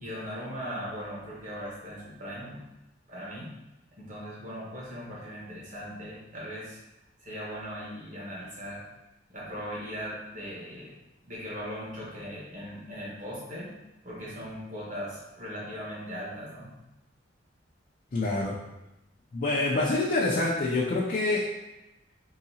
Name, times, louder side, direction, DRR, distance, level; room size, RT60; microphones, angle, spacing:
voice 1, 0.0-2.6 3.1-3.5 4.0-6.8 7.2-8.8 9.3-10.9 11.2-13.7 14.0-16.7, equal, 45° right, -6 dB, 1.2 m, -39 dB
voice 2, 18.1-18.5 19.3-21.5, left 2 dB, 45° left, -4 dB, 0.4 m, -26 dB
3.8 x 2.8 x 2.8 m, 0.97 s
head